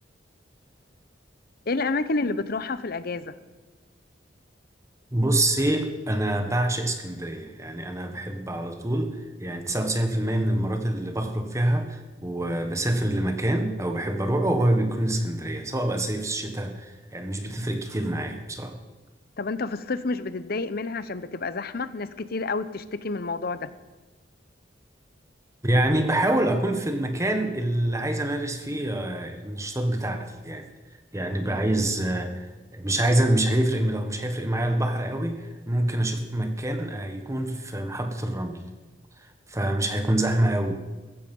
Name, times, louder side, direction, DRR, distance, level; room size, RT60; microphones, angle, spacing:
voice 1, 1.7-3.3 19.4-23.7, left 3 dB, 55° left, 14 dB, 0.8 m, -29 dB
voice 2, 5.1-18.8 25.6-30.6 31.1-38.6 39.5-40.7, right 1 dB, 15° right, 6 dB, 1.4 m, -26 dB
15.0 x 15.0 x 5.5 m, 1.2 s
head